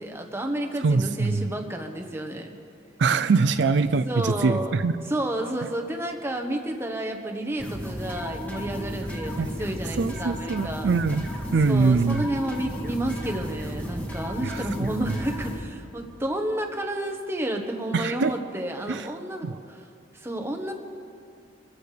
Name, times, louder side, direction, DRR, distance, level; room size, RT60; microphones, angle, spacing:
voice 1, 0.0-2.5 4.0-4.8 5.0-10.9 11.6-19.9 20.1-20.7, right 1 dB, 15° right, 3 dB, 1.2 m, -31 dB
voice 2, 0.8-1.4 3.0-4.9 9.4-9.5 10.0-11.2 11.5-12.3 14.4-14.6 17.9-18.3 18.9-19.0 19.4-19.5, right 4 dB, 70° right, 11 dB, 0.4 m, -23 dB
sound 1, 7.6-15.6, equal, 10° left, 2.0 m, -33 dB
26.5 x 14.5 x 3.4 m, 2.4 s
head